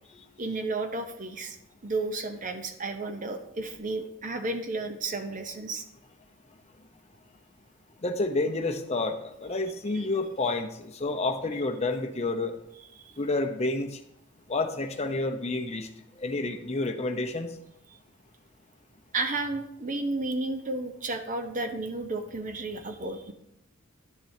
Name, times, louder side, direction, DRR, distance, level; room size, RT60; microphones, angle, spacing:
voice 1, 0.4-1.6 1.8-5.8 9.9-10.0 19.1-23.3, right 2 dB, 40° right, 7 dB, 0.8 m, -32 dB
voice 2, 8.0-12.5 13.2-13.9 14.5-15.9 16.2-17.5, left 2 dB, 30° left, 5 dB, 0.7 m, -29 dB
11.0 x 7.4 x 2.7 m, 0.79 s
head